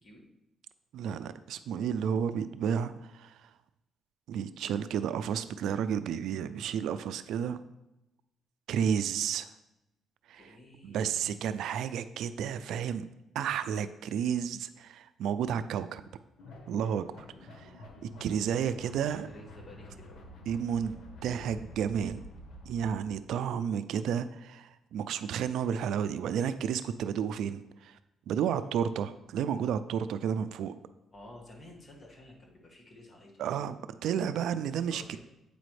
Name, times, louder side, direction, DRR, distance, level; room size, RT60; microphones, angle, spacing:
voice 1, 0.9-3.5 4.3-7.6 8.7-9.5 10.3-10.4 10.8-13.1 13.3-16.0 16.7-19.3 20.5-20.9 21.2-22.2 22.7-28.0 28.3-30.7 33.4-33.8 34.0-35.2, right 8 dB, 80° right, 13 dB, 0.3 m, -32 dB
voice 2, 10.3-11.2 18.2-20.2 28.5-28.7 31.1-33.5 34.7-35.2, left 1 dB, 30° left, -1 dB, 1.7 m, -53 dB
sound 1, 16.4-22.9, left 1 dB, 75° left, 1.1 m, -49 dB
8.3 x 5.0 x 3.2 m, 0.94 s
cardioid pair, 90°, 0 cm